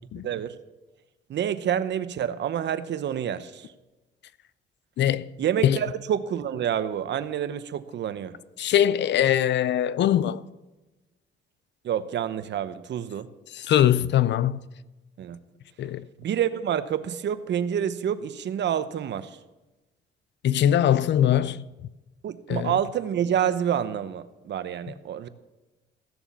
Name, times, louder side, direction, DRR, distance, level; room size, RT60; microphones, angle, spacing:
voice 1, 0.2-0.6 1.3-3.7 5.4-8.4 11.8-13.3 15.2-15.4 16.2-19.4 22.2-25.3, right 9 dB, 65° right, 0.8 m, -28 dB
voice 2, 8.6-10.4 13.7-14.6 15.8-16.0 20.4-21.6 22.5-22.7, left 11 dB, 65° left, 0.5 m, -21 dB
15.5 x 7.1 x 7.2 m
cardioid pair, 90°, 20 cm